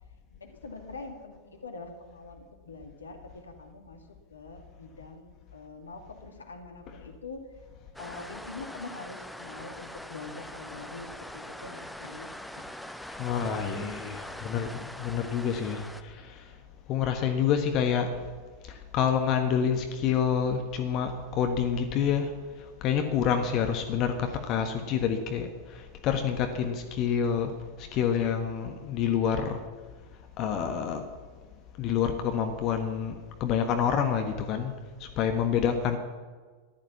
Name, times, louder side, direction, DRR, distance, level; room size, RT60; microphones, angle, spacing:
voice 1, 0.3-7.4 8.0-12.3 17.2-17.3, left 3 dB, 75° left, 4 dB, 2.1 m, -44 dB
sound 1, 8.0-16.0, left 1 dB, ahead, 0.8 m, -42 dB
voice 2, 13.1-16.5 16.9-18.2 18.6-22.3 22.6-27.5 27.8-29.6 30.4-31.0 31.8-34.7 35.0-36.0, left 7 dB, 35° left, 5 dB, 1.5 m, -28 dB
14.5 x 12.0 x 7.1 m, 1.4 s
figure-of-eight pair, 90°, 0 cm